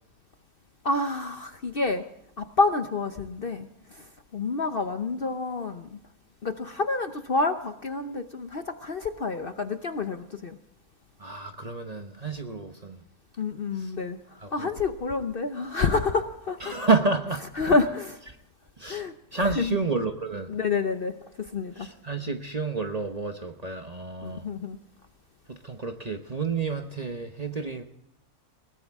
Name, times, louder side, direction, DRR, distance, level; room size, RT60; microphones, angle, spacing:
voice 1, 0.8-2.0 2.4-6.0 6.4-10.6 13.4-16.8 17.6-18.2 18.9-19.1 19.6-19.8 20.5-21.9 24.2-24.8, left 3 dB, 45° left, 8 dB, 0.9 m, -28 dB
voice 2, 11.2-13.0 13.8-13.9 14.4-14.7 16.6-17.8 18.8-20.5 21.8-24.4 25.5-27.8, right 4 dB, 30° right, 5 dB, 0.9 m, -30 dB
21.5 x 18.0 x 3.6 m, 0.79 s
omnidirectional pair, 1.6 m